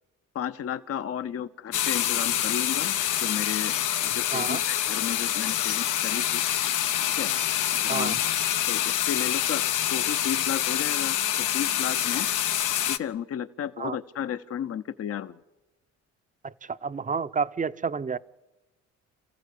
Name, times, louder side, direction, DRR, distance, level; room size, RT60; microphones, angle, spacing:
voice 1, 0.3-3.8 4.0-6.4 7.2-7.3 7.7-8.1 8.7-9.6 9.9-11.2 11.5-12.3 12.9-15.4, left 9 dB, 50° left, 10 dB, 0.8 m, -33 dB
sound 1, 1.7-13.0, left 11 dB, 85° left, 1.0 m, -26 dB
voice 2, 7.9-8.2 13.8-14.0 16.4-18.2, right 5 dB, 25° right, 14 dB, 0.7 m, -30 dB
28.0 x 15.0 x 8.4 m, 1.1 s
cardioid pair, 90°, 30 cm